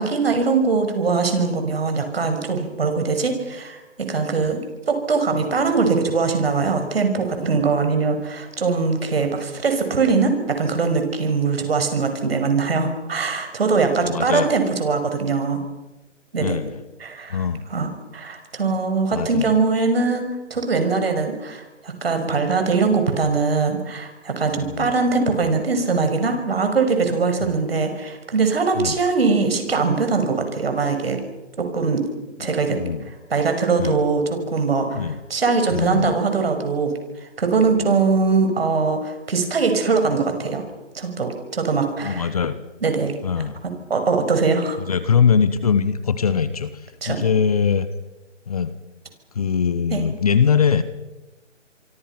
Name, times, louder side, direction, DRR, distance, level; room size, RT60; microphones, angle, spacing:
voice 1, 0.0-4.6 4.9-15.6 16.3-16.5 17.0-31.2 31.6-32.0 32.4-32.8 33.1-40.6 40.9-42.3 42.8-43.1 43.9-44.8 47.0-47.2 49.9-50.0, right 4 dB, 50° right, 6 dB, 6.3 m, -22 dB
voice 2, 14.0-14.5 16.4-16.8 17.3-17.7 19.1-19.5 24.6-24.9 27.4-27.6 28.8-29.0 32.4-33.1 33.8-34.0 34.9-35.2 35.7-36.1 42.0-42.6 43.2-43.6 44.8-47.9 48.5-48.7 49.3-50.8, left 6 dB, 30° left, 14 dB, 1.1 m, -22 dB
28.0 x 24.0 x 6.0 m, 1.1 s
figure-of-eight pair, 155°, 37 cm